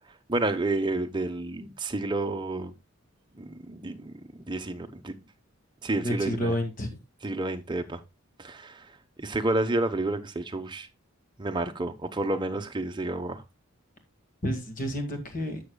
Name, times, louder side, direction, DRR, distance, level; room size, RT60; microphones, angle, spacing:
voice 1, 0.3-2.7 3.3-5.1 5.8-6.5 7.2-8.0 8.4-8.9 9.2-10.9 11.4-13.4, right 2 dB, 20° right, 0.9 m, -30 dB
voice 2, 5.9-7.0 14.4-15.6, equal, 40° left, 2.0 m, -30 dB
12.0 x 7.3 x 2.3 m
head